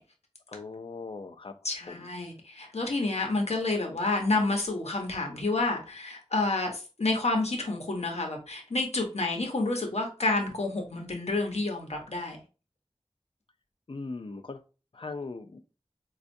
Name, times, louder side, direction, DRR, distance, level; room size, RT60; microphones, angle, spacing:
voice 1, 0.5-1.5 1.9-2.1 13.9-14.6 14.9-15.6, left 3 dB, 55° left, 0.4 m, -39 dB
voice 2, 1.6-12.4, left 2 dB, 80° left, 0.8 m, -29 dB
4.2 x 2.3 x 2.6 m
wide cardioid pair, 45°, 11 cm